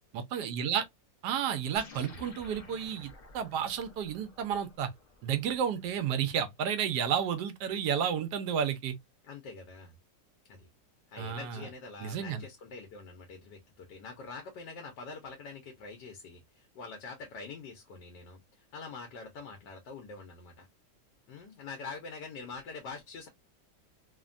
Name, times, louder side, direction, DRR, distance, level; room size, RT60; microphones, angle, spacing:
voice 1, 0.1-0.8 1.2-4.9 5.2-9.0 11.2-11.7 12.0-12.4, right 8 dB, 80° right, 1.2 m, -31 dB
sound 1, 1.7-6.4, left 2 dB, 30° left, 0.7 m, -54 dB
voice 2, 9.2-9.9 10.5-10.7 11.1-20.7 21.3-23.3, left 4 dB, 85° left, 1.4 m, -45 dB
3.3 x 2.1 x 2.4 m
omnidirectional pair, 1.8 m